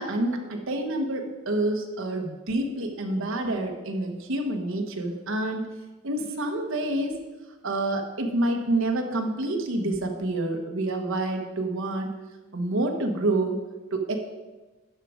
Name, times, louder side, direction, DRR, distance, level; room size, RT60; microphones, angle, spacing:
voice 1, 0.0-5.7 6.0-7.2 7.6-12.1 12.5-13.6 13.9-14.2, right 2 dB, 70° right, 3 dB, 1.2 m, -28 dB
12.0 x 5.2 x 5.0 m, 1.2 s
head